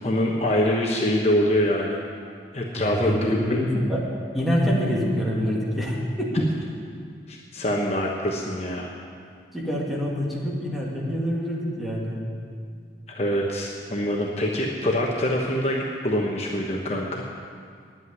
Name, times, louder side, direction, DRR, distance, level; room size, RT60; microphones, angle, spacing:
voice 1, 0.0-2.0 2.5-3.6 7.3-8.9 13.1-17.2, left 1 dB, 35° left, -1 dB, 1.1 m, -24 dB
voice 2, 2.8-4.0 4.3-6.4 9.5-12.3, equal, ahead, -5 dB, 2.1 m, -26 dB
9.5 x 8.8 x 9.6 m, 2.1 s
head